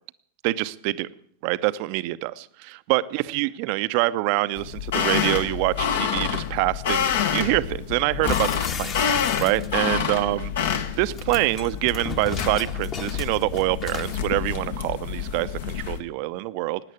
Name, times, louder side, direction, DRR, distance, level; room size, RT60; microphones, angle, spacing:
voice 1, 0.4-1.1 1.4-10.5 11.0-16.8, right 19 dB, 45° right, 16 dB, 0.7 m, -25 dB
sound 1, 4.6-16.0, left 8 dB, 55° left, 1.5 m, -28 dB
sound 2, 8.3-10.0 11.0-14.3, left 6 dB, 30° left, 1.4 m, -35 dB
17.0 x 10.0 x 8.4 m, 0.66 s
figure-of-eight pair, 90°, 0 cm